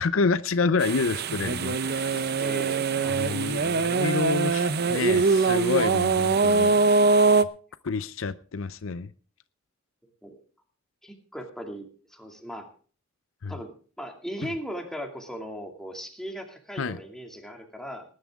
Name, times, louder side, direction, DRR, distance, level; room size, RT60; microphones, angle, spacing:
voice 1, 0.0-2.3 3.2-6.8 7.8-9.1 13.4-13.5 16.8-17.0, left 4 dB, 65° left, 15 dB, 0.6 m, -28 dB
sound 1, 0.8-7.4, right 4 dB, 50° right, 0.7 m, -23 dB
voice 2, 2.4-3.1 10.2-10.4 11.0-12.7 13.5-18.0, equal, ahead, 3 dB, 2.4 m, -38 dB
19.5 x 11.0 x 3.6 m, 0.40 s
head